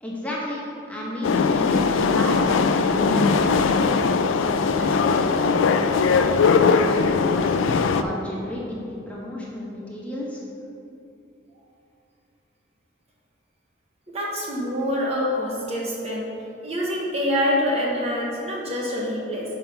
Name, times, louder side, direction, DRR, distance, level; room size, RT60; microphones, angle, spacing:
voice 1, 0.0-6.2 6.7-10.4, left 1 dB, 5° left, -5 dB, 1.1 m, -33 dB
sound 1, 1.2-8.0, left 5 dB, 85° left, 0.4 m, -20 dB
voice 2, 14.1-16.3 16.6-19.5, equal, 35° right, -3 dB, 1.0 m, -26 dB
5.7 x 5.3 x 5.8 m, 2.8 s
head